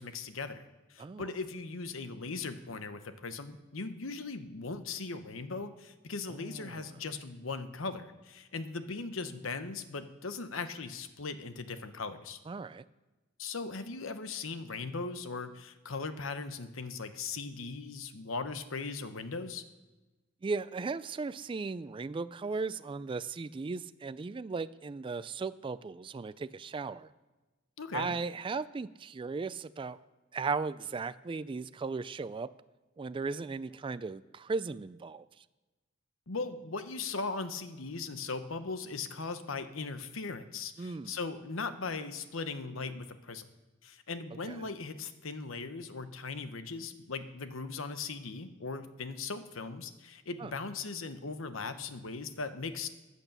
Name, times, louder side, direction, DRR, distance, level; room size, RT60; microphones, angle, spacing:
voice 1, 0.0-12.4 13.4-19.6 27.8-28.2 36.3-43.5 43.8-52.9, left 4 dB, 75° left, 10 dB, 1.0 m, -39 dB
voice 2, 1.0-1.3 6.3-7.0 12.5-12.8 20.4-27.1 27.9-30.0 30.3-32.5 33.0-35.4 40.8-41.2 44.5-44.6 50.4-50.5, right 4 dB, 25° right, 15 dB, 0.3 m, -37 dB
14.5 x 8.3 x 6.8 m, 1.2 s
head